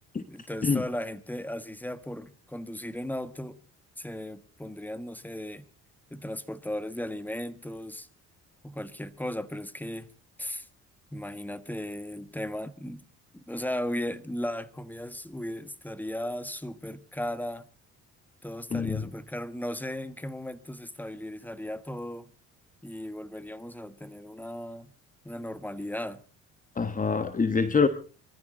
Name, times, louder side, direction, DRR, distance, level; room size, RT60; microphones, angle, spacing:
voice 1, 0.3-3.6 4.0-5.7 6.1-8.1 8.6-10.1 10.4-10.7 11.1-13.0 13.3-17.7 18.4-22.3 22.8-24.9 25.2-26.2, left 1 dB, 5° left, 1.4 m, -36 dB
voice 2, 18.7-19.0 26.8-27.9, left 5 dB, 25° left, 1.3 m, -25 dB
23.5 x 14.0 x 3.8 m
supercardioid pair, 80°, 30 cm